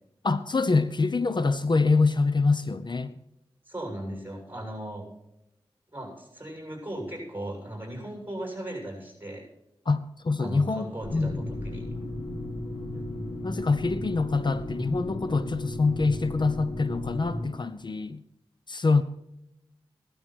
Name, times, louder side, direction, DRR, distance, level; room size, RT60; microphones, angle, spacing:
voice 1, 0.2-3.1 9.9-11.4 13.4-18.2 18.7-19.0, left 3 dB, 50° left, 12 dB, 0.7 m, -25 dB
voice 2, 3.7-5.1 5.9-9.4 10.4-11.8 12.9-13.2, right 1 dB, 20° right, 1 dB, 7.2 m, -37 dB
sound 1, 11.0-17.4, left 1 dB, 75° left, 7.0 m, -35 dB
16.5 x 12.5 x 4.5 m, 0.86 s
wide cardioid pair, 70°, 10 cm